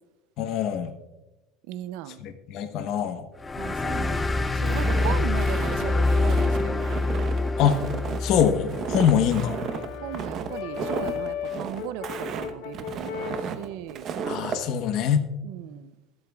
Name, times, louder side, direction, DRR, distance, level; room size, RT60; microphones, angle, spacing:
voice 1, 0.4-0.9 2.2-3.3 7.6-7.8 8.2-9.6 14.3-15.3, left 8 dB, 60° left, 8 dB, 1.1 m, -24 dB
voice 2, 1.7-2.2 3.6-6.8 9.1-9.3 10.0-14.1 15.4-15.9, right 13 dB, 75° right, 13 dB, 0.5 m, -37 dB
sound 1, 3.4-10.5, left 2 dB, 15° left, 0.6 m, -26 dB
Walk footsteps, 4.7-14.6, right 6 dB, 45° right, 1.0 m, -33 dB
Brass instrument, 8.1-13.5, left 10 dB, 80° left, 0.8 m, -36 dB
23.0 x 8.0 x 2.4 m, 1.1 s
supercardioid pair, 120°, 0 cm